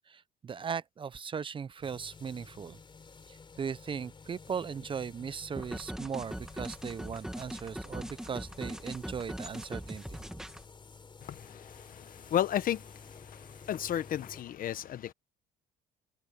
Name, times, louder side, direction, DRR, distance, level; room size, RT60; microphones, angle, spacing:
voice 1, 0.0-2.8 3.3-10.2, right 6 dB, 30° right, 0.5 m, -38 dB
sound 1, 1.8-14.4, left 5 dB, 30° left, 4.2 m, -52 dB
sound 2, 5.6-10.6, right 1 dB, 5° right, 2.0 m, -41 dB
voice 2, 11.2-15.1, left 11 dB, 55° left, 1.2 m, -34 dB
cardioid pair, 110°, 17 cm